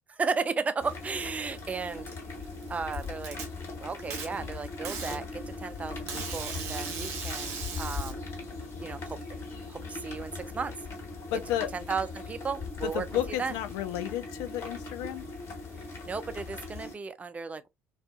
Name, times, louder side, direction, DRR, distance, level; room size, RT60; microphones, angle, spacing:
voice 1, 0.1-2.1 2.7-3.4 3.8-8.2 8.8-9.2 9.7-10.7 11.7-13.1 13.4-13.6 16.1-17.7, right 5 dB, 20° right, 0.3 m, -34 dB
sound 1, 0.8-16.9, left 3 dB, 40° left, 1.5 m, -40 dB
Packing tape duct tape, 2.4-3.4 4.1-4.3 4.8-5.2 6.1-8.1, right 6 dB, 55° right, 0.8 m, -37 dB
voice 2, 11.3-11.7 12.8-15.2, left 12 dB, 60° left, 0.3 m, -32 dB
2.3 x 2.3 x 2.3 m
figure-of-eight pair, 60°, 7 cm